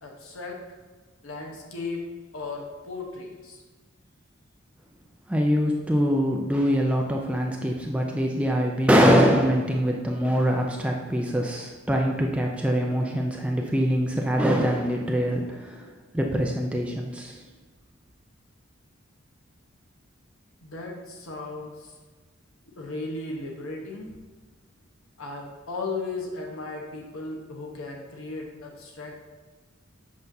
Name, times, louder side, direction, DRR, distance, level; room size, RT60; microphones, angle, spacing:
voice 1, 0.0-0.6 1.2-2.0 2.3-3.6 20.6-21.9 22.7-24.2 25.2-29.2, left 3 dB, 85° left, 0 dB, 1.0 m, -36 dB
voice 2, 5.3-17.4, equal, 5° right, 0 dB, 0.4 m, -23 dB
7.8 x 5.5 x 2.7 m, 1.4 s
head